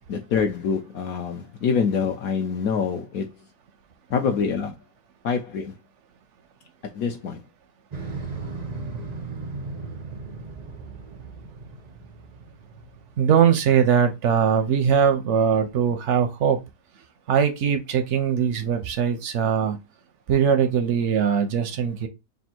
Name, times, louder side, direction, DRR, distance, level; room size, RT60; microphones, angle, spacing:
voice 1, 0.1-3.2 4.1-4.8 5.2-5.7 6.9-7.4, left 6 dB, 65° left, 1.0 m, -25 dB
Motorcycle, 7.9-13.1, right 3 dB, 80° right, 0.3 m, -36 dB
voice 2, 13.2-16.6 17.3-19.8 20.3-22.1, right 7 dB, 65° right, 0.7 m, -21 dB
3.5 x 2.7 x 4.3 m
omnidirectional pair, 1.8 m